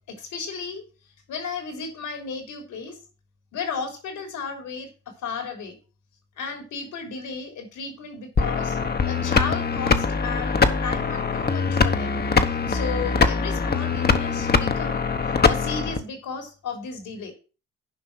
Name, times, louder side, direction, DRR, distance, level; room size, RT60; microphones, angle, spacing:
voice 1, 0.1-0.8 1.3-3.0 3.5-4.9 5.2-5.8 6.4-8.8 9.0-12.2 12.7-15.1 15.5-17.3, left 5 dB, 80° left, 5 dB, 3.7 m, -34 dB
sound 1, 8.4-16.0, left 5 dB, 30° left, 1.1 m, -22 dB
10.0 x 5.5 x 6.0 m, 0.34 s
cardioid pair, 90°, 30 cm